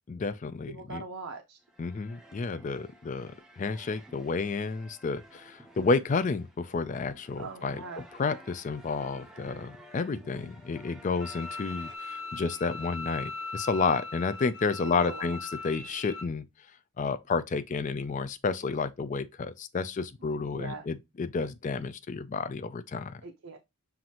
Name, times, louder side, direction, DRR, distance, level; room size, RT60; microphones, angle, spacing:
voice 1, 0.1-1.0 1.8-7.8 8.2-15.4 15.6-16.5 17.0-23.2, left 4 dB, 35° left, 0.3 m, -31 dB
voice 2, 0.7-1.6 7.4-8.1 10.1-10.5 14.8-15.4 20.2-20.9 23.2-23.6, right 3 dB, 70° right, 0.6 m, -42 dB
sound 1, 1.6-12.0, equal, 5° right, 0.6 m, -53 dB
Bowed string instrument, 11.2-16.2, left 3 dB, 65° left, 0.9 m, -39 dB
5.8 x 2.6 x 2.8 m
head